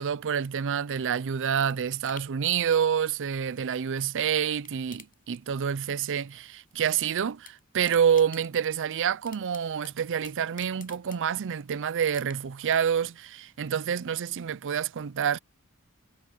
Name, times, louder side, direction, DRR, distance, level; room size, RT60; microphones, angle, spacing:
voice 1, 0.0-15.4, right 8 dB, 60° right, 0.5 m, -27 dB
sound 1, 0.9-4.2 4.5-6.0 6.2-7.0 7.3-11.6 12.1-12.7 13.1-13.2, left 9 dB, 40° left, 7.9 m, -53 dB
head